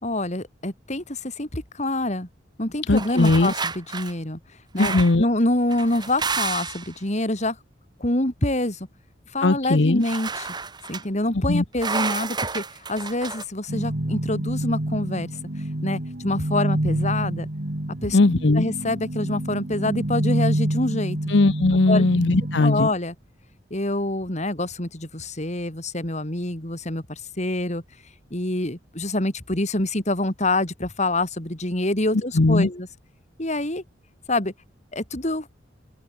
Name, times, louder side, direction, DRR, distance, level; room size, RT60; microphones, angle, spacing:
voice 1, 0.0-2.3 2.6-4.4 4.7-7.6 8.0-8.8 9.3-10.6 10.9-12.6 12.9-15.4 15.8-17.5 18.0-18.2 18.5-21.2 21.9-22.1 22.6-23.1 23.7-27.8 28.3-32.9 33.4-33.8 34.3-34.5 34.9-35.5, left 1 dB, 40° left, 3.7 m, -26 dB
voice 2, 2.9-3.5 4.8-5.2 9.4-10.0 11.5-11.6 18.1-18.7 21.3-22.9 32.3-32.7, left 2 dB, 75° left, 0.9 m, -19 dB
sound 1, 2.9-4.1 4.8-5.2 5.7-6.9 10.0-11.0 11.8-13.4, right 4 dB, 25° right, 1.9 m, -30 dB
sound 2, 13.7-22.6, right 1 dB, 55° right, 2.3 m, -28 dB
open air
head